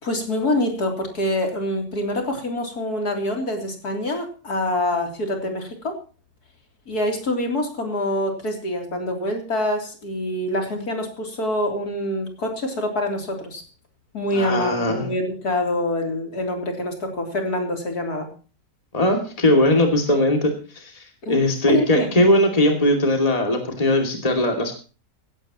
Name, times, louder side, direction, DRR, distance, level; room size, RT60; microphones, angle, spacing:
voice 1, 0.0-6.0 6.9-13.6 14.1-18.3 21.2-21.4 21.7-22.1, left 1 dB, 60° left, 2 dB, 3.8 m, -25 dB
voice 2, 14.3-15.1 18.9-20.9 21.3-24.7, left 1 dB, 20° left, 2 dB, 2.6 m, -19 dB
17.0 x 16.0 x 3.0 m, 0.36 s
omnidirectional pair, 1.9 m